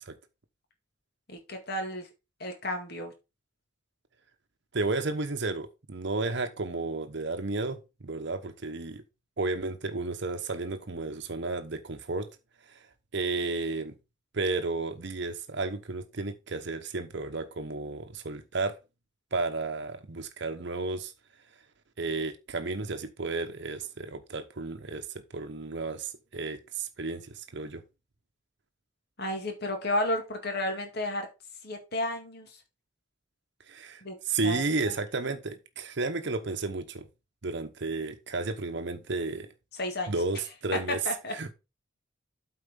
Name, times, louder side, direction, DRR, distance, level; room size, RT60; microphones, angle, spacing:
voice 1, 1.3-2.1 2.4-3.1 29.2-31.3 31.6-32.5 34.0-34.2 34.4-34.9 39.7-40.1 40.7-40.8 41.1-41.3, left 1 dB, 55° left, 2.1 m, -32 dB
voice 2, 4.7-9.0 9.4-12.3 12.7-12.8 13.1-13.9 14.3-18.8 19.3-21.1 22.0-27.8 33.7-37.1 37.4-39.5 40.1-41.0 41.3-41.5, right 3 dB, 60° right, 0.9 m, -32 dB
8.3 x 4.4 x 5.2 m
head